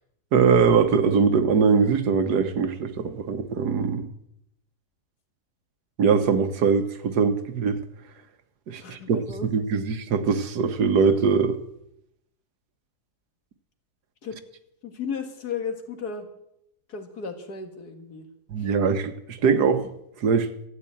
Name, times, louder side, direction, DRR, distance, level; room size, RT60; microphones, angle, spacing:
voice 1, 0.3-4.1 6.0-7.8 8.7-9.2 9.5-11.6 18.5-19.9 20.2-20.5, right 5 dB, 85° right, 9 dB, 1.7 m, -22 dB
voice 2, 8.8-9.5 14.2-14.4 14.8-16.3 16.9-18.3 18.6-18.7, left 5 dB, 75° left, 6 dB, 2.3 m, -34 dB
13.5 x 8.9 x 8.7 m, 0.78 s
omnidirectional pair, 1.7 m